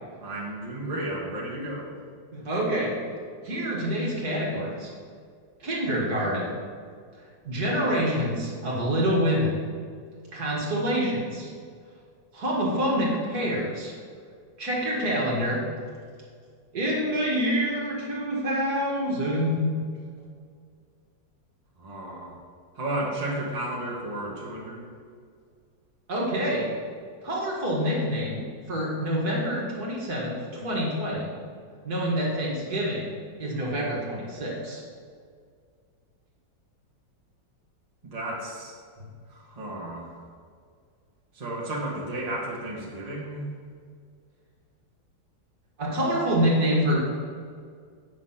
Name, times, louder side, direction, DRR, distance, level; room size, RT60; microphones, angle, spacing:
voice 1, 0.2-2.0 21.8-22.3 22.7-24.9 38.0-38.7 39.3-40.1 41.3-43.5, right 1 dB, 20° right, -4 dB, 1.5 m, -33 dB
voice 2, 2.3-3.0 3.4-4.9 5.6-6.6 7.4-9.6 10.3-11.5 12.3-13.9 14.6-15.6 16.7-19.9 26.1-26.7 27.2-31.3 31.8-33.1 33.4-34.8 45.8-47.0, equal, 55° right, -4 dB, 2.3 m, -26 dB
8.7 x 6.1 x 5.8 m, 2.1 s
omnidirectional pair, 2.0 m